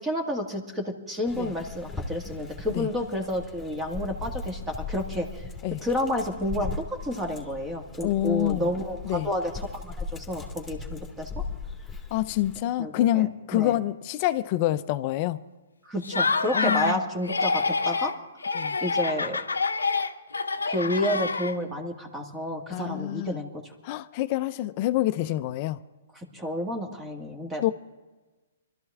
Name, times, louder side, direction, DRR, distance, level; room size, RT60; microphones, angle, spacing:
voice 1, 0.0-5.4 5.8-11.3 12.8-13.3 13.5-13.7 15.8-18.1 18.8-19.4 20.7-23.7 26.2-27.6, equal, 15° right, 1.9 m, -30 dB
Dog, 1.3-12.6, left 4 dB, 5° left, 2.2 m, -38 dB
voice 2, 8.0-8.7 9.0-9.3 12.1-15.4 16.5-17.0 18.5-18.8 22.7-23.4 23.8-25.8 27.6-27.7, left 14 dB, 40° left, 0.6 m, -27 dB
Laughter, 16.0-17.0 17.2-18.1 18.4-21.8, left 4 dB, 85° left, 0.8 m, -27 dB
25.0 x 12.5 x 3.6 m
hypercardioid pair, 125°, 0 cm